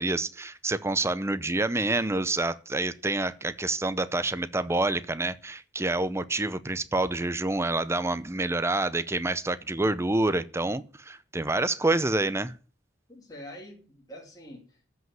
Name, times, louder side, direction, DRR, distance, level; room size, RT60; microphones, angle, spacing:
voice 1, 0.0-12.5, right 2 dB, 15° right, 0.7 m, -27 dB
voice 2, 13.1-14.9, equal, 20° left, 2.7 m, -45 dB
14.0 x 5.6 x 9.4 m
head